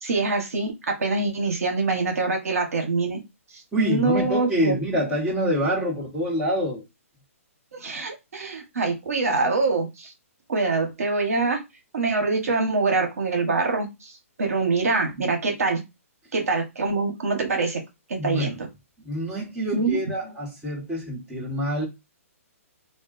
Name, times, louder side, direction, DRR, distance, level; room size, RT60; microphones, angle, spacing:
voice 1, 0.0-3.2 3.8-4.8 7.7-10.1 10.5-11.6 11.9-14.1 14.4-15.8 16.3-17.8 18.1-18.7 19.7-20.3, right 3 dB, 80° right, 1.1 m, -24 dB
voice 2, 3.7-6.8 18.2-18.6 19.0-21.9, equal, 10° right, 1.3 m, -26 dB
2.4 x 2.2 x 3.9 m
hypercardioid pair, 145°, 8 cm